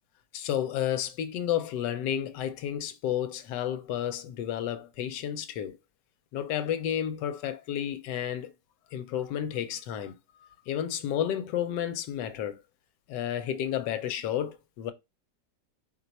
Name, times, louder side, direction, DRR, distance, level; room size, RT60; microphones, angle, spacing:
voice 1, 0.3-5.8 6.3-8.5 8.9-10.2 10.7-12.6 13.1-14.9, left 10 dB, 85° left, 1.2 m, -31 dB
4.4 x 2.3 x 4.0 m
omnidirectional pair, 1.9 m